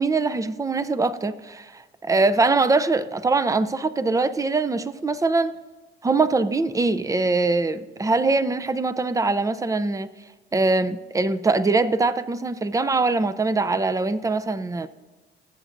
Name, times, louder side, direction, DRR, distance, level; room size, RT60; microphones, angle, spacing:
voice 1, 0.0-5.5 6.0-10.1 10.5-14.9, right 3 dB, 15° right, 0.5 m, -22 dB
20.5 x 7.9 x 2.6 m
cardioid pair, 90°, 20 cm